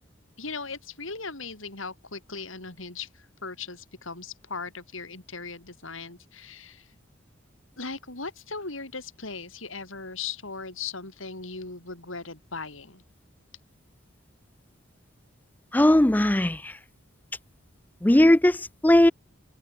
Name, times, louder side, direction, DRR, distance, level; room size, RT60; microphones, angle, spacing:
voice 1, 0.4-6.9 7.8-13.0, left 4 dB, 80° left, 5.2 m, -38 dB
voice 2, 15.7-16.7 18.0-18.6 18.8-19.1, left 1 dB, 10° left, 0.4 m, -18 dB
head